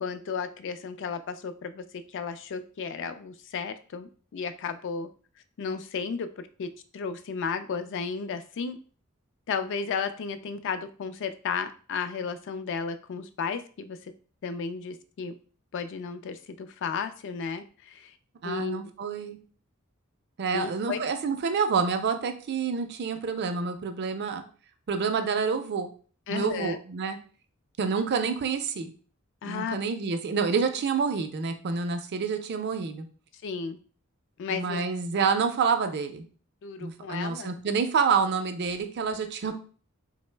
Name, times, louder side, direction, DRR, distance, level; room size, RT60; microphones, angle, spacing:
voice 1, 0.0-5.1 5.6-8.8 9.5-14.1 14.4-15.4 15.7-18.2 18.4-18.8 20.5-21.0 26.3-26.8 29.4-29.8 33.4-33.8 34.4-34.8 36.6-37.5, left 5 dB, 60° left, 10 dB, 0.3 m, -33 dB
voice 2, 18.4-19.4 20.4-24.4 24.9-25.9 26.3-27.2 27.8-28.9 29.4-33.1 34.5-36.2 36.8-39.6, right 5 dB, 50° right, 7 dB, 0.4 m, -28 dB
3.7 x 2.0 x 3.2 m, 0.41 s
head